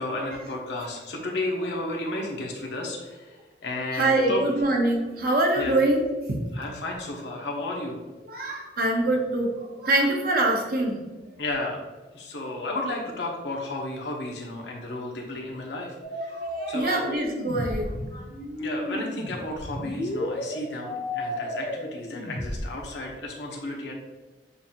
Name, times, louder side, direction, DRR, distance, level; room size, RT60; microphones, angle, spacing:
voice 1, 0.0-4.4 5.5-5.7 6.5-8.0 11.4-11.8 12.1-16.3 16.7-17.1 18.6-23.9, left 2 dB, 80° left, -1 dB, 0.9 m, -33 dB
voice 2, 3.9-6.0 6.3-6.5 8.3-11.0 16.3-18.4, right 2 dB, 55° right, 0 dB, 0.9 m, -24 dB
sound 1, 16.0-22.6, left 1 dB, 50° left, 0.8 m, -33 dB
6.8 x 2.6 x 2.8 m, 1.2 s
head